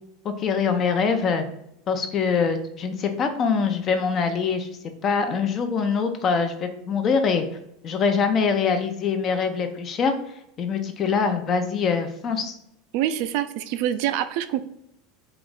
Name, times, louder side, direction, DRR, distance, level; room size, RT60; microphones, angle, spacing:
voice 1, 0.2-1.4 1.9-4.7 5.0-7.4 7.8-10.1 10.6-12.5, left 5 dB, 40° left, 7 dB, 0.6 m, -23 dB
voice 2, 12.9-14.6, right 11 dB, 65° right, 11 dB, 0.3 m, -25 dB
3.3 x 2.5 x 3.9 m, 0.78 s
hypercardioid pair, 85°, 0 cm